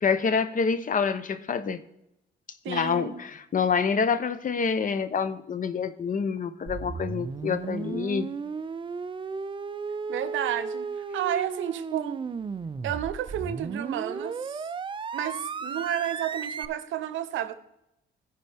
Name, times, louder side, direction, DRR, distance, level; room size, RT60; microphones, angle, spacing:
voice 1, 0.0-1.8 2.7-8.3, left 6 dB, 40° left, 0.8 m, -27 dB
voice 2, 2.6-3.2 10.1-12.2 12.8-14.7 15.1-17.5, right 11 dB, 80° right, 0.7 m, -31 dB
sound 1, 6.7-16.7, right 5 dB, 25° right, 0.4 m, -34 dB
15.0 x 5.2 x 3.4 m
cardioid pair, 90°, 20 cm